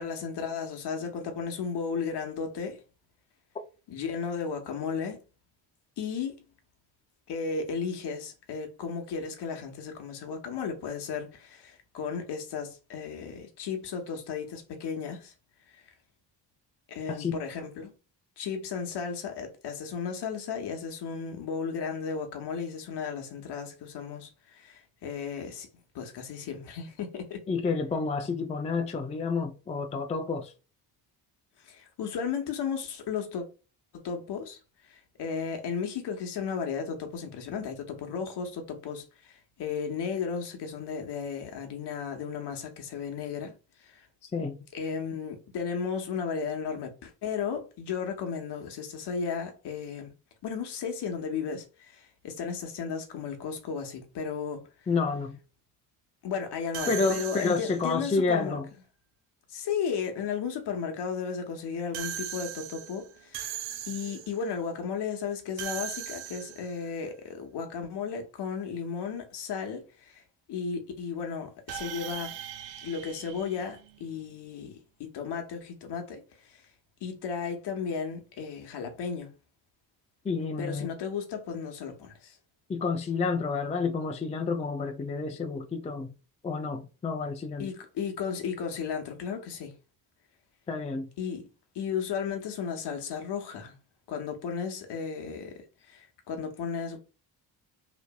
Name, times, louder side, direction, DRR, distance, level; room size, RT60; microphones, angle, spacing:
voice 1, 0.0-2.8 3.9-5.2 6.0-6.3 7.3-15.3 16.9-17.9 18.4-25.7 25.9-27.4 31.6-33.4 33.9-34.6 34.9-43.5 43.8-44.1 44.7-50.1 50.4-54.6 56.2-58.6 59.5-63.5 63.9-70.2 70.5-72.3 72.8-74.7 75.0-76.6 77.0-79.3 80.6-82.4 87.6-89.7 91.2-91.4 91.7-93.8 94.1-95.6 95.9-97.0, left 6 dB, 60° left, 1.0 m, -34 dB
voice 2, 27.5-30.5 44.2-44.6 54.9-55.4 56.9-58.7 80.2-80.9 82.7-86.1 86.4-87.7 90.7-91.1, left 4 dB, 15° left, 0.4 m, -29 dB
sound 1, 56.7-58.0 61.9-64.5 65.6-66.8 71.7-74.2, right 10 dB, 70° right, 0.5 m, -39 dB
2.9 x 2.5 x 2.2 m
supercardioid pair, 60°, 47 cm